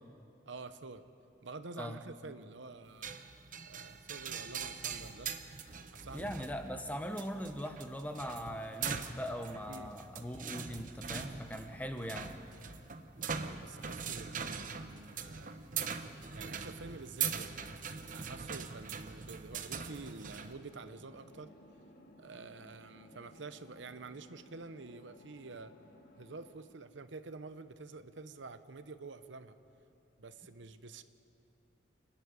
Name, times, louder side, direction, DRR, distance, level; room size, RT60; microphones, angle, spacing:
voice 1, 0.5-1.0 1.4-3.1 3.6-5.3 5.9-6.5 9.7-9.9 13.1-15.8 16.3-17.7 18.1-21.5 22.2-25.7 26.2-29.6 30.2-31.0, right 3 dB, 75° right, 11 dB, 0.8 m, -48 dB
sound 1, 3.0-20.5, right 6 dB, 45° right, 0.9 m, -42 dB
voice 2, 6.1-12.3, equal, 10° left, 6 dB, 1.0 m, -40 dB
sound 2, 19.4-26.5, left 1 dB, 50° left, 2.2 m, -59 dB
28.5 x 10.5 x 9.6 m, 2.7 s
head